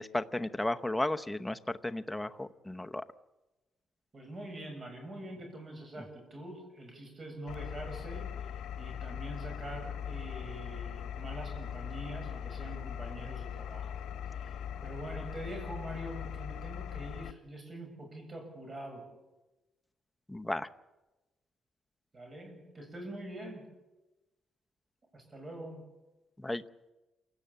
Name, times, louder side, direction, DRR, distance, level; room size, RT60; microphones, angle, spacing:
voice 1, 0.0-3.0 20.3-20.7 26.4-26.6, left 1 dB, 5° left, 8 dB, 0.8 m, -34 dB
voice 2, 4.1-8.5 8.8-13.9 14.3-19.1 22.1-23.7 25.1-25.8, right 1 dB, 30° right, 3 dB, 7.3 m, -44 dB
Engine, 7.5-17.3, left 8 dB, 85° left, 1.1 m, -40 dB
27.5 x 17.0 x 8.7 m, 1.1 s
cardioid pair, 140°, 0 cm